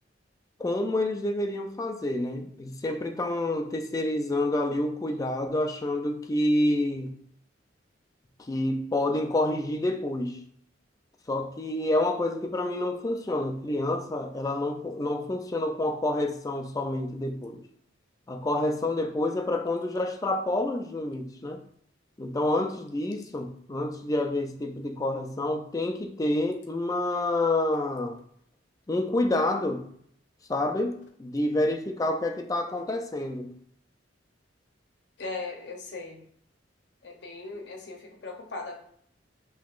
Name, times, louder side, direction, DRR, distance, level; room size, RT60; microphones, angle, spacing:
voice 1, 0.6-7.1 8.5-10.4 11.3-17.6 18.3-21.6 22.2-28.2 28.9-29.9 30.5-33.5, left 1 dB, 20° left, 0.4 m, -28 dB
voice 2, 35.2-36.3 37.0-38.8, left 3 dB, 65° left, 0.8 m, -38 dB
5.5 x 3.0 x 2.5 m
head